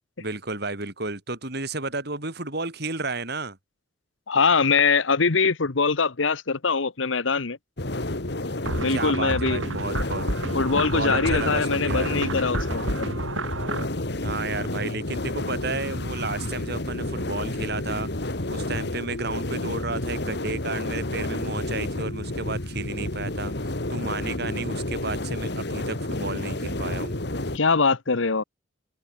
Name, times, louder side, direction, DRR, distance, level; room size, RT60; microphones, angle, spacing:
voice 1, 0.2-3.6 8.9-10.3 10.9-12.2 14.2-27.2, right 3 dB, 55° right, 4.4 m, -32 dB
voice 2, 4.3-7.6 8.8-9.6 10.5-13.1 27.5-28.4, left 4 dB, 80° left, 1.1 m, -23 dB
sound 1, 7.8-27.6, left 1 dB, 60° left, 2.2 m, -30 dB
sound 2, 8.7-13.9, right 2 dB, 90° right, 6.7 m, -30 dB
open air
head